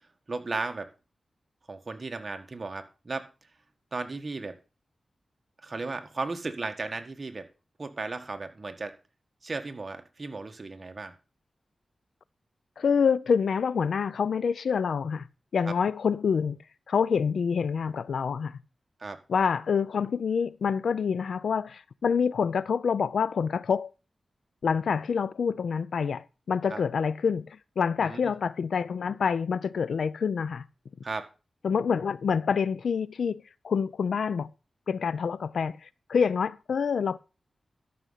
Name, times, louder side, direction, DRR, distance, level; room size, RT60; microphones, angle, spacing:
voice 1, 0.3-0.9 1.7-3.3 3.9-4.6 5.6-7.5 7.8-8.9 9.4-11.1 15.7-15.8 19.0-19.2 26.7-26.8 28.0-28.3 31.0-31.2, right 3 dB, 45° right, 1.6 m, -35 dB
voice 2, 12.8-15.3 15.5-16.6 16.9-18.6 19.3-23.9 24.6-30.7 31.6-34.5 34.9-37.2, left 6 dB, 85° left, 0.5 m, -27 dB
12.5 x 6.4 x 5.6 m
cardioid pair, 70°, 0 cm